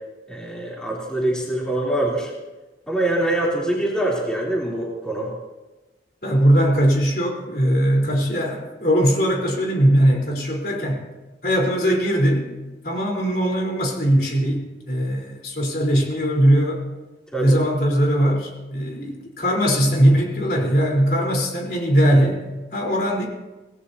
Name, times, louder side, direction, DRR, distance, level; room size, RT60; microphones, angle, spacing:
voice 1, 0.3-2.3 2.9-5.3 17.3-17.6, right 1 dB, 5° left, -5 dB, 3.4 m, -24 dB
voice 2, 6.2-11.0 11.4-12.5 12.8-16.8 17.4-22.4 22.7-23.3, equal, 55° left, -2 dB, 4.0 m, -20 dB
25.5 x 18.5 x 2.8 m, 1.1 s
head